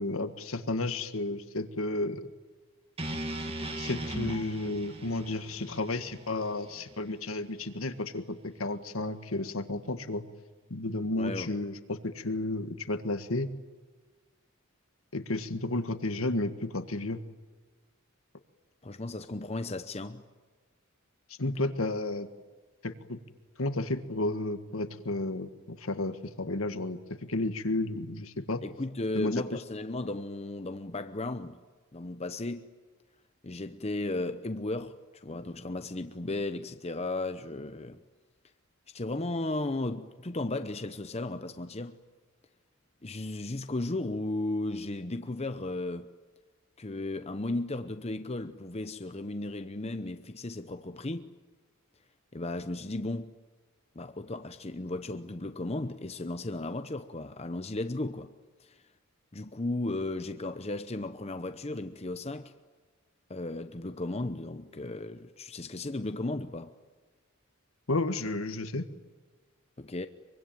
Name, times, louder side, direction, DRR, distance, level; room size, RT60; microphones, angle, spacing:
voice 1, 0.0-2.3 3.8-10.3 10.7-13.5 15.1-17.2 21.4-22.3 22.8-23.2 23.6-27.0 27.3-28.6 29.1-29.4 67.9-68.9, left 2 dB, 70° left, 1.7 m, -32 dB
sound 1, 3.0-7.1, right 1 dB, 25° right, 2.5 m, -38 dB
voice 2, 11.2-11.5 18.8-20.3 28.6-31.6 31.9-32.7 33.4-38.0 38.9-42.0 43.0-46.1 46.8-51.3 52.3-53.3 53.9-58.3 58.6-58.8 59.3-62.5 63.3-66.7 69.8-70.1, left 2 dB, 30° left, 0.8 m, -35 dB
24.0 x 24.0 x 9.1 m
head